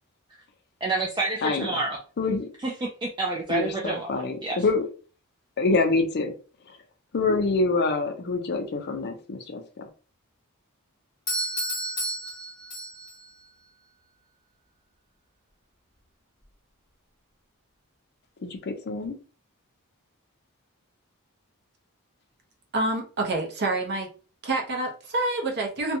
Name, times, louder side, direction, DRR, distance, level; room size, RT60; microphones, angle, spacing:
voice 1, 0.8-2.0 2.6-2.7 3.0-4.1 4.4-4.6, right 3 dB, 20° right, -1 dB, 0.3 m, -28 dB
voice 2, 1.4-1.7 2.2-2.5 3.5-4.8 5.6-6.3 6.7-6.8 7.1-9.8 18.4-19.2, left 3 dB, 50° left, 6 dB, 0.5 m, -26 dB
Doorbell, 11.3-13.3, right 1 dB, 20° left, 0.8 m, -31 dB
voice 3, 22.7-24.1 24.4-26.0, right 2 dB, 50° right, 1 dB, 0.7 m, -27 dB
2.6 x 2.2 x 2.7 m, 0.37 s
head